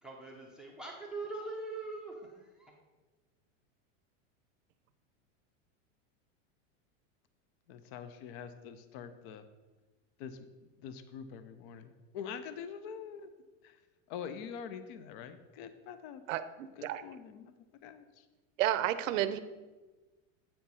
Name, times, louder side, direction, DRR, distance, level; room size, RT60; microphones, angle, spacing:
voice 1, 0.0-2.7, right 3 dB, ahead, -1 dB, 0.6 m, -42 dB
voice 2, 7.7-9.4 10.2-10.4 10.8-13.3 13.6-13.8 14.1-16.2 16.8-17.5 17.8-18.2, left 7 dB, 45° left, 11 dB, 0.6 m, -45 dB
voice 3, 16.3-17.0 18.6-19.4, right 12 dB, 80° right, 12 dB, 0.6 m, -31 dB
8.6 x 4.5 x 5.4 m, 1.2 s
supercardioid pair, 155°, 38 cm